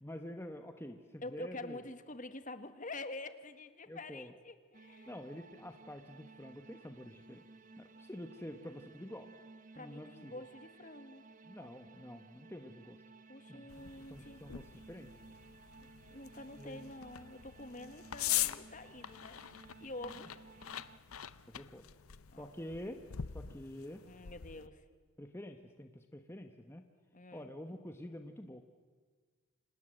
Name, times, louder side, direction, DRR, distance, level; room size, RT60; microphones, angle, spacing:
voice 1, 0.0-1.8 3.9-4.3 5.1-7.4 7.8-9.3 9.7-10.4 11.4-13.0 13.5-15.1 16.6-16.9 21.5-21.9 22.4-23.0 23.3-24.0 25.2-26.8 27.3-28.6, left 1 dB, 10° left, 6 dB, 1.0 m, -48 dB
voice 2, 1.2-5.1 9.7-11.2 13.3-14.4 16.1-20.4 22.3-22.5 24.0-24.8 27.1-27.5, left 2 dB, 35° left, 10 dB, 1.5 m, -47 dB
sound 1, 4.7-21.0, right 3 dB, 35° right, 1.1 m, -58 dB
sound 2, 13.7-24.7, left 12 dB, 80° left, 0.7 m, -43 dB
29.5 x 26.0 x 7.8 m, 1.5 s
head